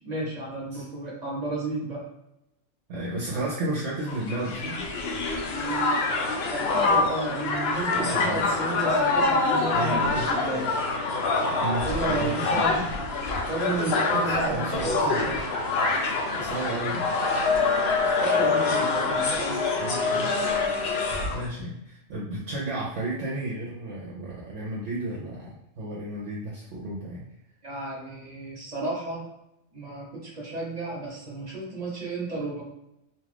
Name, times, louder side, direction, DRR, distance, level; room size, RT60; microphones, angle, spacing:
voice 1, 0.0-2.0 5.5-6.1 6.5-10.7 11.8-12.8 13.5-15.4 18.2-19.6 27.6-29.3 29.7-32.6, right 2 dB, 35° right, -5 dB, 0.9 m, -32 dB
voice 2, 2.9-4.9 7.9-8.6 9.7-10.3 11.6-13.0 14.1-15.4 16.3-17.1 19.8-20.4 21.3-27.3, right 1 dB, 65° right, -5 dB, 0.9 m, -33 dB
Crowd, 4.1-21.4, left 3 dB, 65° left, 0.7 m, -25 dB
2.5 x 2.4 x 3.3 m, 0.84 s
omnidirectional pair, 1.3 m